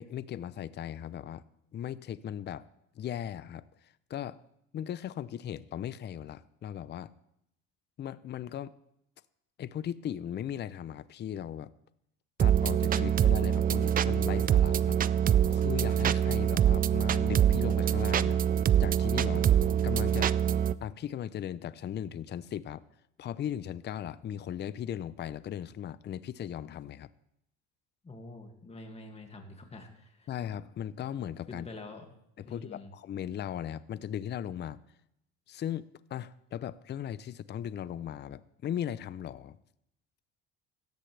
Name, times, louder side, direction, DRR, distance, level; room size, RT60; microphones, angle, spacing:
voice 1, 0.0-1.4 1.7-2.7 2.9-4.4 4.7-7.1 8.0-8.7 9.6-11.7 12.4-15.0 15.5-18.4 18.8-19.5 19.8-20.3 20.8-22.8 23.2-27.1 30.3-31.7 32.4-34.8 35.5-39.6, left 10 dB, 35° left, 17 dB, 0.6 m, -38 dB
sound 1, 12.4-20.7, right 9 dB, 30° right, 0.4 m, -25 dB
voice 2, 28.0-30.3 31.5-32.1 32.5-32.9, left 2 dB, 20° left, 3 dB, 2.3 m, -46 dB
17.0 x 13.0 x 3.4 m, 0.77 s
supercardioid pair, 95°, 30 cm